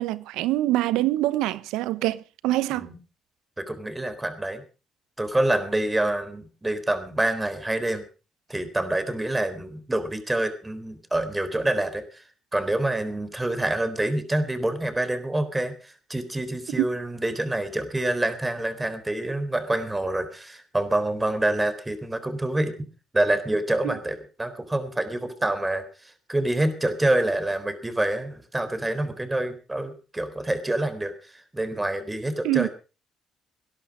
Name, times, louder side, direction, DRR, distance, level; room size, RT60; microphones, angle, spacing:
voice 1, 0.0-2.9 23.8-23.9 32.4-32.7, right 16 dB, 85° right, 0.9 m, -25 dB
voice 2, 3.6-4.6 5.2-8.0 8.5-12.2 12.5-22.7 23.1-25.8 26.3-32.7, right 1 dB, 15° right, 3.9 m, -27 dB
19.0 x 11.5 x 5.1 m
supercardioid pair, 70°, 0 cm